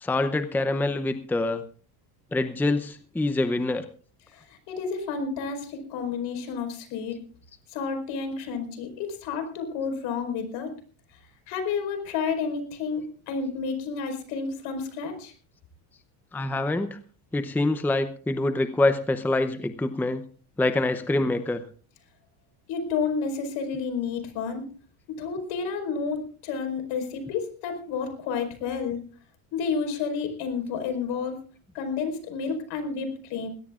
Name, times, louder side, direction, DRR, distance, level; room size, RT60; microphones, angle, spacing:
voice 1, 0.0-1.6 2.3-3.8 16.3-17.0 17.3-20.2 20.6-21.6, left 2 dB, 5° left, 9 dB, 0.7 m, -25 dB
voice 2, 4.3-7.2 7.7-10.7 11.5-15.3 22.7-24.7 25.2-29.0 29.5-31.4 31.7-33.5, left 5 dB, 70° left, 5 dB, 5.0 m, -30 dB
21.0 x 17.5 x 2.5 m, 0.40 s
cardioid pair, 145°, 44 cm